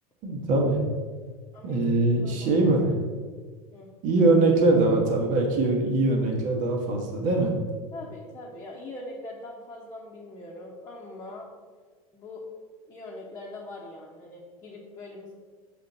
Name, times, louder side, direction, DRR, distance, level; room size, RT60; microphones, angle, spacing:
voice 1, 0.2-0.8 1.6-2.9 4.0-7.5, right 2 dB, 45° right, 1 dB, 1.4 m, -22 dB
voice 2, 1.5-2.5 3.7-3.9 7.9-11.5 12.1-12.4 12.9-15.3, left 2 dB, 20° left, -4 dB, 1.1 m, -42 dB
6.5 x 4.3 x 4.2 m, 1.5 s
figure-of-eight pair, 80°, 19 cm